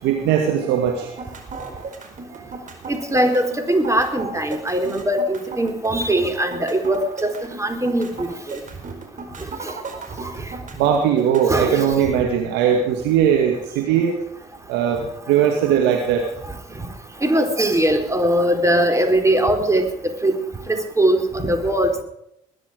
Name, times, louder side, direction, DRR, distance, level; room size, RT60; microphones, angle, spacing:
voice 1, 0.0-1.2 2.3-2.4 10.8-14.1 14.7-16.3, right 8 dB, 75° right, 3 dB, 2.0 m, -19 dB
sound 1, 1.0-11.6, right 4 dB, 45° right, 4.5 m, -35 dB
voice 2, 2.9-8.6 9.6-9.7 10.2-10.4 11.5-11.8 17.2-19.9 20.2-20.4 20.7-21.9, right 1 dB, 15° right, 6 dB, 4.2 m, -20 dB
21.0 x 11.0 x 5.1 m, 0.78 s
hypercardioid pair, 50°, 18 cm